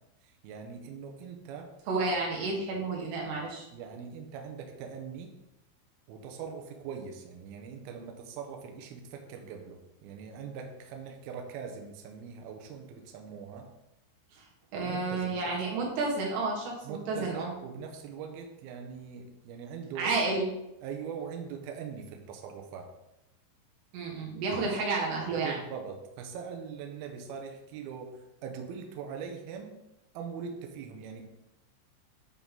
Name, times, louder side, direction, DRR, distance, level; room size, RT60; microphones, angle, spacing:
voice 1, 0.2-1.7 3.7-5.3 6.1-13.7 14.8-15.6 16.8-20.1 20.8-22.9 24.6-24.8 25.3-29.8 30.1-31.2, right 6 dB, 90° right, 3 dB, 2.1 m, -42 dB
voice 2, 1.9-3.7 14.3-14.4 14.7-17.5 20.0-20.5 23.9-25.6, right 3 dB, 65° right, -3 dB, 3.7 m, -31 dB
9.7 x 5.5 x 3.8 m, 0.91 s
omnidirectional pair, 5.8 m